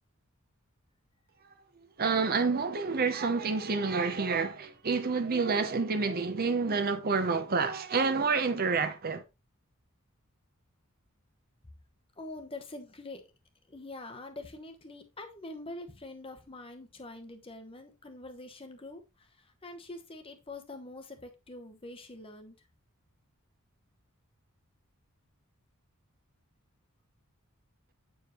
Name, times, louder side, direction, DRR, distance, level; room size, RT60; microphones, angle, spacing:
voice 1, 2.0-9.2, right 4 dB, 45° right, 0.7 m, -28 dB
voice 2, 12.2-13.2 13.7-19.3 19.6-22.5, left 2 dB, 25° left, 0.9 m, -45 dB
7.9 x 4.8 x 3.0 m
head